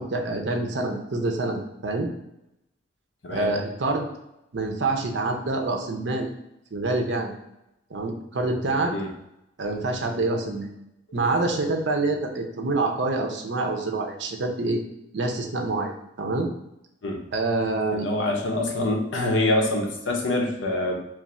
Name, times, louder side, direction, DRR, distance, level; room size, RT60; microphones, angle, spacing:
voice 1, 0.0-2.1 3.3-4.1 4.5-6.3 6.7-7.3 7.9-8.9 9.6-10.7 11.1-14.8 15.1-16.5 17.3-18.1, right 2 dB, 65° right, 3 dB, 0.6 m, -26 dB
voice 2, 17.9-20.9, left 1 dB, 75° left, 1 dB, 0.8 m, -25 dB
3.2 x 2.5 x 4.1 m, 0.86 s
head